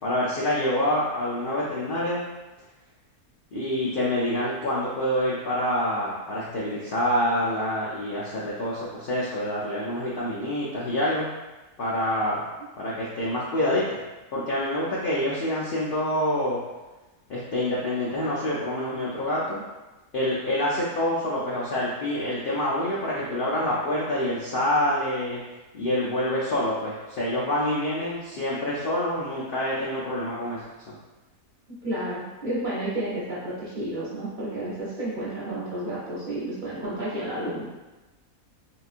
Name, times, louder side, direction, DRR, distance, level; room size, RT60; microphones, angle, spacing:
voice 1, 0.0-2.2 3.5-11.3 11.8-12.5 12.8-14.0 14.3-16.6 17.3-19.6 20.1-25.4 25.7-30.6, left 1 dB, 85° left, -7 dB, 0.4 m, -26 dB
voice 2, 31.8-37.6, right 1 dB, 40° right, -9 dB, 0.8 m, -31 dB
3.6 x 2.3 x 2.5 m, 1.1 s
omnidirectional pair, 1.6 m